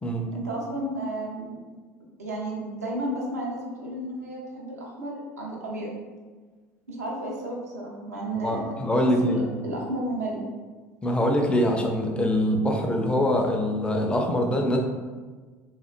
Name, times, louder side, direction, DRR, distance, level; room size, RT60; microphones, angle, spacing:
voice 1, 0.3-1.6 2.2-5.9 6.9-8.6 8.9-10.5, right 1 dB, 80° right, -4 dB, 0.5 m, -32 dB
voice 2, 8.4-9.4 11.0-14.8, equal, 10° left, 2 dB, 0.3 m, -24 dB
2.4 x 2.1 x 2.4 m, 1.4 s
figure-of-eight pair, 65°, 9 cm